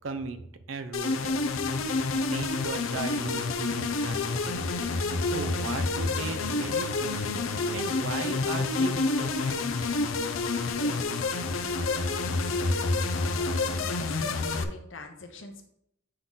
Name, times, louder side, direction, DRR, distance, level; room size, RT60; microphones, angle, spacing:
voice 1, 0.0-1.4 2.1-4.8 5.2-7.3 7.7-9.7, right 4 dB, 75° right, 10 dB, 0.6 m, -37 dB
sound 1, 0.9-14.6, left 3 dB, 90° left, 0.6 m, -28 dB
voice 2, 10.7-11.3 11.7-15.7, left 2 dB, 70° left, 3 dB, 1.0 m, -44 dB
7.9 x 3.8 x 3.9 m, 0.75 s
head